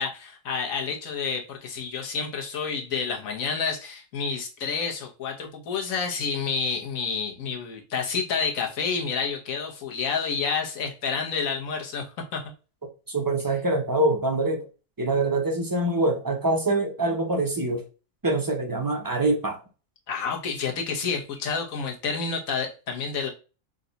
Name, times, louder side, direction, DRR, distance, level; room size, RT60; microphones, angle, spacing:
voice 1, 0.0-12.4 20.1-23.3, left 5 dB, 75° left, 1 dB, 1.4 m, -29 dB
voice 2, 13.1-14.7 15.0-17.8 18.2-19.6, right 2 dB, 30° right, 2 dB, 0.4 m, -24 dB
3.9 x 2.3 x 3.9 m, 0.34 s
omnidirectional pair, 1.4 m